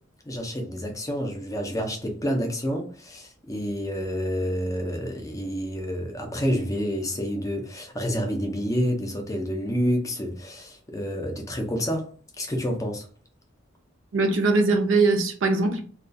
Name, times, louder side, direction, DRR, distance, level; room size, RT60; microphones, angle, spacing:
voice 1, 0.3-12.1 12.4-13.1, equal, 15° left, 0.5 m, -28 dB
voice 2, 14.1-15.9, right 3 dB, 65° right, 0.5 m, -21 dB
2.3 x 2.3 x 2.5 m
head